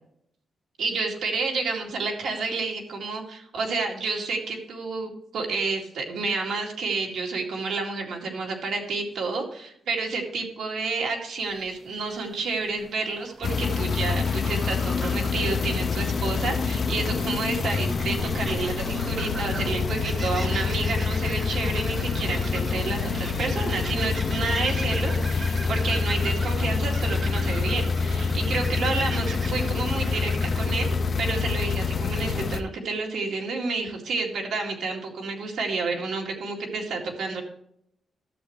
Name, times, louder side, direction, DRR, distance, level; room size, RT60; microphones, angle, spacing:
voice 1, 0.8-37.4, right 4 dB, 65° right, 0 dB, 2.2 m, -30 dB
sound 1, 11.4-30.6, right 3 dB, 30° right, 1.2 m, -42 dB
sound 2, 13.4-32.6, left 5 dB, 35° left, 0.5 m, -26 dB
12.5 x 7.6 x 3.1 m, 0.71 s
wide cardioid pair, 175°, 0 cm